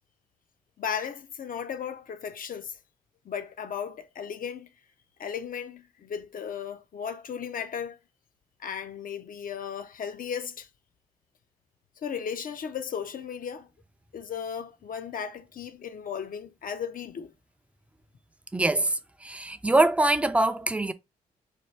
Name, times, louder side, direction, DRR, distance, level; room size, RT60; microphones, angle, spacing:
voice 1, 0.8-2.8 3.2-4.7 5.2-8.0 8.6-10.7 12.0-13.7 14.1-17.3, left 7 dB, 55° left, 0.6 m, -35 dB
voice 2, 18.5-20.9, right 2 dB, 5° right, 0.5 m, -24 dB
4.4 x 2.3 x 3.2 m
supercardioid pair, 45°, 17 cm